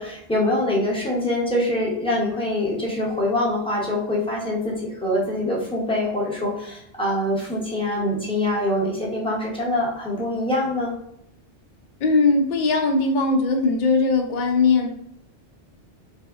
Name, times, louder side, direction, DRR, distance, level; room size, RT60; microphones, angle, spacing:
voice 1, 0.0-10.9, left 1 dB, 5° left, -5 dB, 0.5 m, -24 dB
voice 2, 12.0-14.9, left 3 dB, 60° left, 3 dB, 0.5 m, -19 dB
3.4 x 2.0 x 2.3 m, 0.75 s
omnidirectional pair, 1.2 m